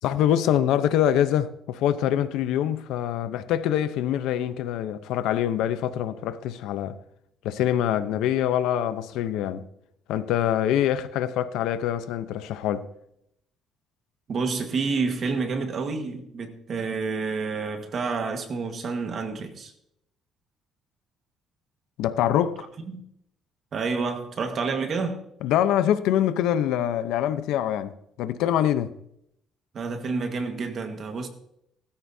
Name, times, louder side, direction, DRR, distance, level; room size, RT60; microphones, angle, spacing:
voice 1, 0.0-7.0 7.4-9.7 10.1-12.9 22.0-22.6 25.4-28.9, left 10 dB, 85° left, 0.8 m, -24 dB
voice 2, 14.3-19.7 22.9-23.0 23.7-25.2 29.7-31.3, right 4 dB, 40° right, 1.6 m, -29 dB
17.0 x 14.0 x 2.8 m
cardioid pair, 160°, 0 cm